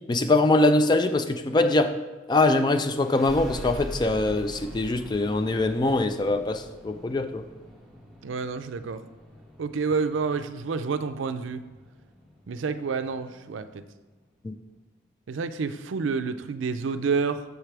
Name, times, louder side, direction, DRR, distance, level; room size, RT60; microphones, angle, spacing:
voice 1, 0.1-2.0 2.3-7.5 14.4-14.5, left 2 dB, 25° left, 9 dB, 0.3 m, -23 dB
sound 1, 2.9-14.2, equal, 5° left, 1.6 m, -44 dB
voice 2, 8.2-9.0 9.6-11.6 12.5-13.8 15.3-17.4, right 5 dB, 85° right, 10 dB, 0.4 m, -29 dB
6.6 x 3.3 x 5.8 m, 1.2 s
head